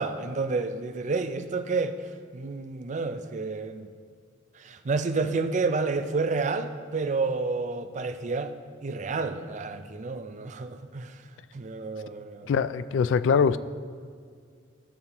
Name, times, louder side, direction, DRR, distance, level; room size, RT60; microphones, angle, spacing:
voice 1, 0.0-3.9 4.5-8.5 8.8-11.2 11.5-12.5, right 4 dB, 40° right, 9 dB, 0.4 m, -30 dB
voice 2, 12.5-13.6, left 6 dB, 75° left, 15 dB, 0.3 m, -23 dB
14.5 x 7.1 x 2.9 m, 2.1 s
head